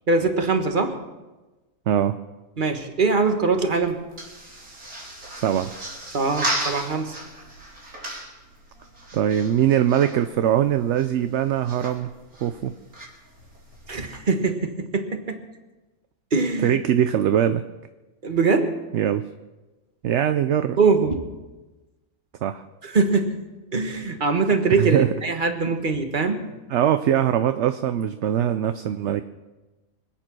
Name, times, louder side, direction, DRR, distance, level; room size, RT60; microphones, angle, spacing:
voice 1, 0.1-1.0 2.6-4.0 6.1-7.1 13.9-15.4 16.3-16.8 18.2-18.8 20.8-21.2 22.8-23.4 23.7-26.5, right 4 dB, 35° right, 6 dB, 1.5 m, -22 dB
sound 1, 3.2-14.2, right 1 dB, 80° right, 3.9 m, -36 dB
voice 2, 5.3-5.7 9.1-12.1 12.4-12.7 16.6-17.6 18.9-19.2 20.0-20.8 22.4-22.6 24.8-25.1 26.7-29.2, right 10 dB, 60° right, 10 dB, 0.8 m, -21 dB
25.0 x 9.0 x 6.1 m, 1.1 s
omnidirectional pair, 1.5 m